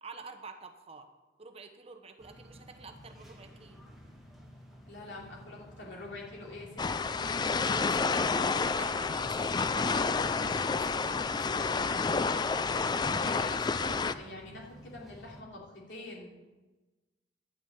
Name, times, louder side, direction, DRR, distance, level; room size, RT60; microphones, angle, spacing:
voice 1, 0.0-1.1 1.4-3.8 7.5-11.8, right 4 dB, 35° right, 5 dB, 0.9 m, -48 dB
sound 1, 2.2-15.4, equal, ahead, 1.7 m, -53 dB
voice 2, 4.9-6.8 7.2-7.4 12.8-16.4, left 2 dB, 80° left, -3 dB, 3.0 m, -45 dB
sound 2, 6.8-14.1, left 4 dB, 25° left, 0.3 m, -29 dB
11.0 x 6.0 x 8.7 m, 1.2 s
head